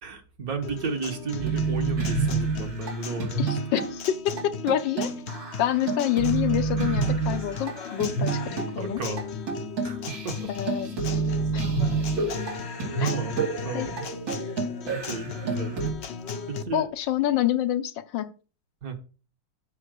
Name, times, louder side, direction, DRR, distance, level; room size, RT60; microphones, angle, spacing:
voice 1, 0.0-3.6 8.8-9.2 9.8-10.5 10.8-10.9 13.0-14.0 14.8-15.8 16.5-16.9 18.8-18.9, right 4 dB, 55° right, 1.8 m, -33 dB
Guitar, 0.6-16.6, left 5 dB, 50° left, 0.8 m, -37 dB
sound 1, 1.4-3.9 4.4-4.5 4.7-8.7 9.2-9.3 9.5-15.9, right 4 dB, 85° right, 3.7 m, -29 dB
voice 2, 3.4-5.1 5.6-9.0 10.5-11.2 11.5-11.6 13.0-13.1 13.7-13.9 16.7-18.3, left 11 dB, 80° left, 1.5 m, -27 dB
7.8 x 5.8 x 6.5 m
omnidirectional pair, 2.0 m